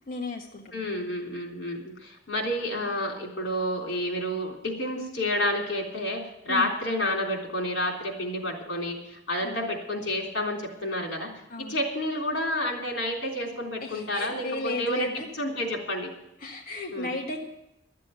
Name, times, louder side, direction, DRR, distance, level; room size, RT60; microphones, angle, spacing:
voice 1, 0.1-0.9 6.5-6.7 9.4-9.7 11.5-11.8 13.8-15.3 16.4-17.4, left 2 dB, 55° left, 0 dB, 1.5 m, -34 dB
voice 2, 0.7-6.2 6.5-11.3 11.6-15.1 15.3-16.1 16.9-17.2, left 1 dB, 85° left, 2 dB, 3.5 m, -30 dB
12.5 x 7.6 x 9.1 m, 0.84 s
head